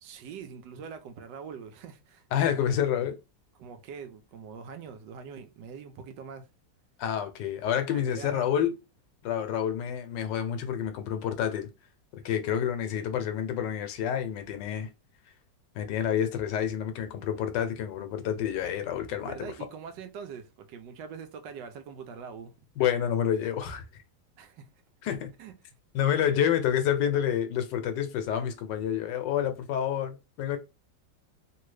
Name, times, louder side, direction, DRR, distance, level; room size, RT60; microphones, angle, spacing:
voice 1, 0.0-2.8 3.5-6.5 7.9-8.5 19.3-22.5 24.4-24.7 25.4-25.5 26.1-26.3, right 6 dB, 75° right, 1.2 m, -43 dB
voice 2, 2.3-3.1 7.0-8.7 9.2-11.7 12.2-14.9 15.7-19.3 22.8-23.8 25.0-25.3 25.9-30.6, left 9 dB, 75° left, 1.2 m, -28 dB
3.3 x 2.4 x 3.1 m
omnidirectional pair, 2.0 m